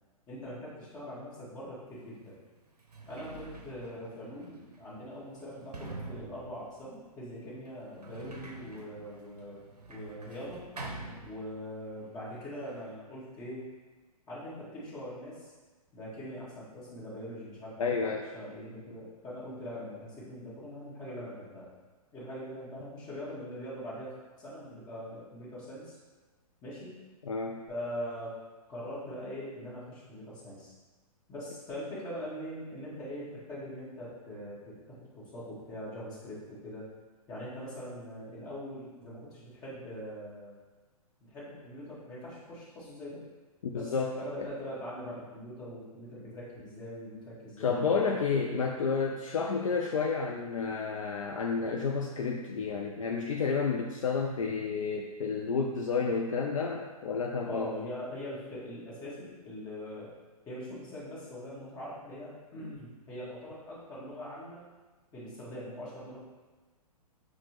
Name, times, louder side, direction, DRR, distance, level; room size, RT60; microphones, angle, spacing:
voice 1, 0.3-2.3 3.1-9.6 9.9-10.6 11.2-13.7 14.3-15.5 15.9-21.7 22.1-26.0 26.6-27.0 27.7-28.4 28.7-30.7 31.3-36.9 37.3-40.5 41.3-43.2 43.7-48.0 57.5-60.1 60.5-64.6 65.1-66.2, equal, 20° left, -7 dB, 1.2 m, -42 dB
Sliding door, 2.0-2.1 2.7-11.9 12.1-12.9, right 3 dB, 85° right, 0.6 m, -47 dB
voice 2, 17.8-18.3 27.2-27.6 43.6-44.5 47.6-57.7, left 5 dB, 60° left, 1 dB, 0.4 m, -31 dB
5.6 x 2.1 x 2.9 m, 1.3 s
figure-of-eight pair, 115°, 20 cm